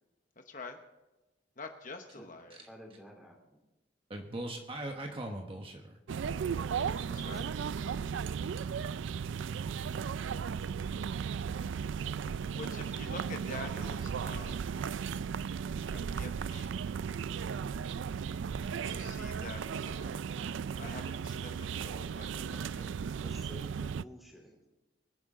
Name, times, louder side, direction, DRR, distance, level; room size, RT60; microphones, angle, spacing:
voice 1, 0.4-0.8 1.6-2.6 7.1-7.4 12.3-14.7 15.9-16.8 18.8-20.3 20.7-23.0, left 3 dB, 45° left, 5 dB, 1.0 m, -47 dB
voice 2, 2.7-3.6 7.1-7.6 10.6-10.8 23.2-24.6, equal, ahead, -1 dB, 3.4 m, -52 dB
voice 3, 4.1-6.0, right 1 dB, 30° right, 3 dB, 1.2 m, -40 dB
sound 1, 6.1-24.0, right 6 dB, 75° right, 0.4 m, -36 dB
23.5 x 11.0 x 3.8 m, 1.0 s
head